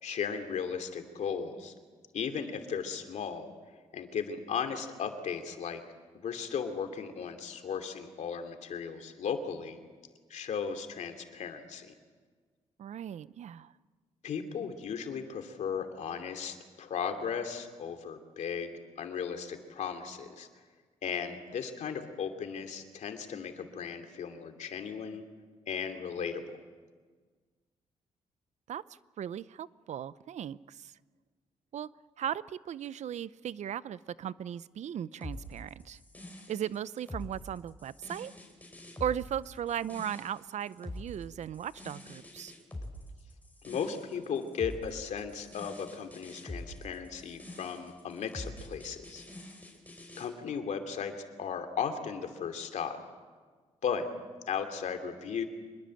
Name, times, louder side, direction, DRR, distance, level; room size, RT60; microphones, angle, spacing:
voice 1, 0.0-1.7 2.1-3.5 3.9-5.8 6.1-9.8 10.3-11.9 14.2-18.7 19.0-20.5 21.0-25.2 25.7-26.6 43.6-49.2 50.2-51.1 51.4-53.0 53.8-54.1 54.5-55.4, left 6 dB, 75° left, 5 dB, 2.8 m, -36 dB
voice 2, 12.8-13.7 28.7-28.8 29.2-30.9 31.7-31.9 32.2-36.0 36.5-38.3 39.0-42.5, right 9 dB, 70° right, 17 dB, 0.7 m, -37 dB
sound 1, 35.2-50.3, left 1 dB, 15° left, 5.6 m, -45 dB
25.5 x 21.5 x 7.8 m, 1.5 s
cardioid pair, 85°, 12 cm